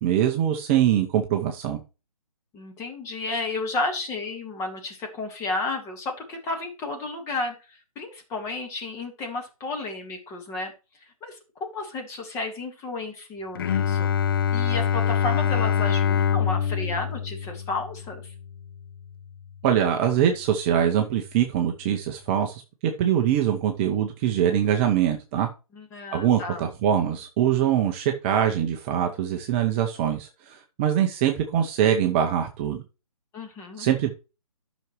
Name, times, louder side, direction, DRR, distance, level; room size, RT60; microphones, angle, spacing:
voice 1, 0.0-1.8 19.6-25.5 26.1-32.8 33.8-34.1, right 10 dB, 20° right, 3 dB, 0.7 m, -23 dB
voice 2, 2.5-10.7 11.2-14.1 14.5-18.3 25.7-26.7 33.3-33.9, left 3 dB, 15° left, 3 dB, 1.6 m, -32 dB
Bowed string instrument, 13.6-19.3, left 8 dB, 40° left, 0.5 m, -25 dB
12.0 x 6.1 x 3.1 m, 0.31 s
figure-of-eight pair, 145°, 19 cm